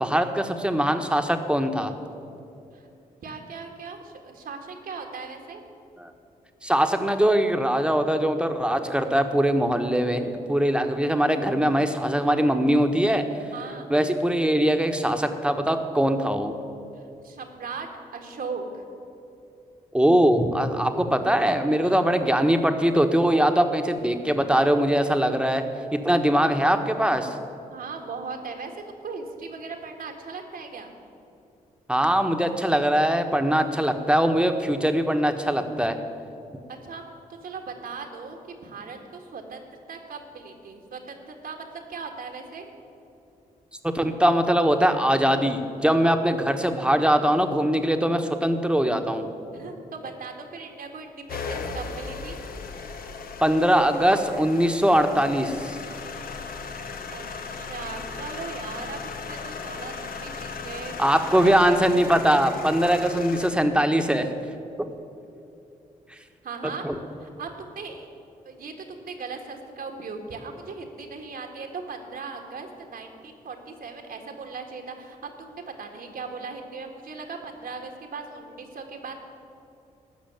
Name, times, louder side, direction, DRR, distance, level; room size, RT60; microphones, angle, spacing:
voice 1, 0.0-1.9 6.0-6.1 6.6-13.2 13.9-16.5 19.9-25.6 25.9-27.3 31.9-35.9 43.9-49.3 53.4-55.8 61.0-64.3 64.8-64.9 66.8-66.9, equal, 5° right, 6 dB, 1.3 m, -22 dB
voice 2, 3.2-5.6 13.5-13.9 16.9-18.8 21.8-22.0 27.7-30.9 36.7-37.0 37.3-42.7 49.5-52.4 57.1-57.2 57.5-59.0 59.3-60.9 61.3-61.9 62.3-62.5 66.4-66.9 67.2-68.1 68.4-79.1, right 4 dB, 65° right, 3 dB, 1.7 m, -38 dB
sound 1, 51.3-63.5, left 4 dB, 65° left, 1.0 m, -37 dB
13.5 x 6.3 x 9.3 m, 2.7 s
supercardioid pair, 45°, 16 cm